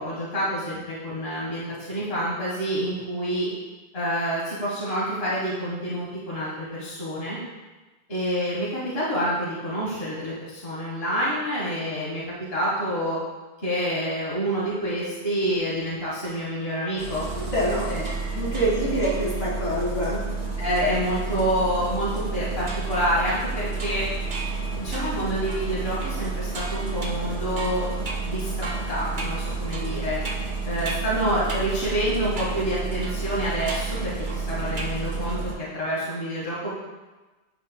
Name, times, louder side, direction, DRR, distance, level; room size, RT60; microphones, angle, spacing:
voice 1, 0.0-3.5 3.9-7.4 8.1-12.2 12.5-13.2 13.6-17.2 17.9-18.0 18.3-18.4 20.6-24.0 24.8-27.9 28.2-30.2 30.6-36.7, equal, 60° left, -7 dB, 1.8 m, -27 dB
Engine starting, 17.0-35.5, right 4 dB, 90° right, 1.7 m, -30 dB
voice 2, 17.5-18.0 18.3-20.2, equal, 80° left, -6 dB, 2.2 m, -25 dB
sound 1, 18.0-19.6 22.7-31.2 31.5-31.7 32.3-32.7 33.0-35.0 35.3-35.6, right 2 dB, 45° right, 0.9 m, -39 dB
10.5 x 5.4 x 2.2 m, 1.2 s
omnidirectional pair, 1.2 m